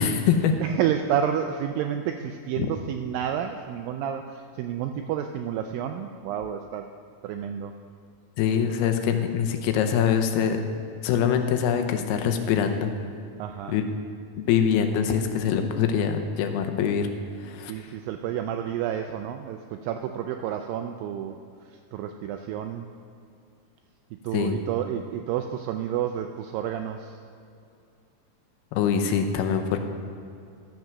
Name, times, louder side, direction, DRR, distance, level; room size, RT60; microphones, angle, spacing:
voice 1, 0.0-0.5 2.6-2.7 8.4-10.6 11.0-12.9 13.7-13.8 14.4-17.1 17.4-17.7 24.3-24.6 28.7-29.8, left 8 dB, 85° left, 6 dB, 2.8 m, -24 dB
voice 2, 0.6-6.9 7.2-7.7 13.4-13.8 17.7-21.4 21.9-22.9 24.2-27.1, right 9 dB, 85° right, 6 dB, 2.0 m, -30 dB
13.0 x 7.7 x 6.0 m, 2.5 s
omnidirectional pair, 4.5 m